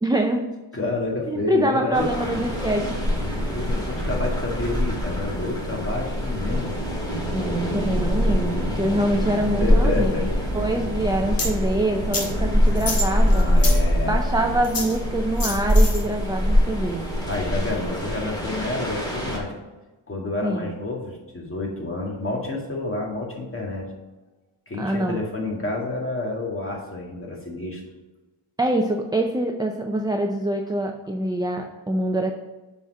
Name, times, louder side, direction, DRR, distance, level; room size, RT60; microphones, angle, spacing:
voice 1, 0.0-0.6 1.3-3.0 7.3-10.1 10.5-13.5 14.1-17.1 20.4-20.8 24.8-25.2 28.6-32.3, right 1 dB, 10° right, 3 dB, 0.5 m, -25 dB
voice 2, 0.7-2.1 3.3-6.7 9.6-10.3 13.2-14.2 17.3-19.5 20.1-23.8 24.7-27.8, left 2 dB, 25° left, -1 dB, 2.0 m, -29 dB
sound 1, 1.9-19.4, equal, 10° left, 1.9 m, -24 dB
sound 2, 11.4-11.5 12.1-12.3 12.8-13.8 14.6-15.0 15.4-16.0, left 2 dB, 45° left, 1.9 m, -28 dB
7.1 x 4.5 x 5.4 m, 1.2 s
wide cardioid pair, 110°, 50 cm